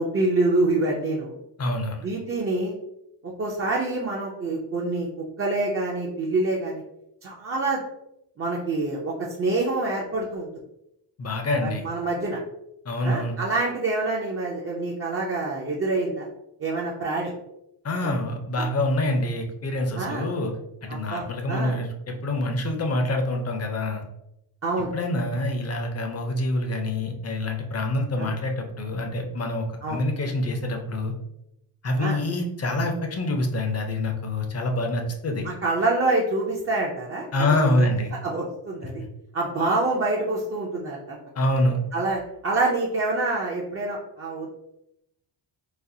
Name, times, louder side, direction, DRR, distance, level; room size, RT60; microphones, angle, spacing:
voice 1, 0.0-1.4 2.0-2.8 3.2-5.1 5.4-6.8 7.2-7.8 8.4-10.5 11.6-12.4 13.0-16.3 16.6-17.3 18.0-18.1 19.9-20.3 20.9-21.8 24.6-24.9 28.2-28.3 29.8-30.0 32.0-32.2 35.4-37.9 38.2-39.0 39.3-41.2 41.9-44.5, right 2 dB, 30° right, -3 dB, 0.4 m, -26 dB
voice 2, 1.6-2.1 11.2-11.8 12.9-13.3 17.8-20.5 20.8-24.0 24.9-31.1 31.8-35.5 37.3-38.1 41.4-41.8, left 1 dB, 35° left, 4 dB, 0.5 m, -26 dB
4.1 x 2.3 x 2.6 m, 0.84 s
wide cardioid pair, 135°, 47 cm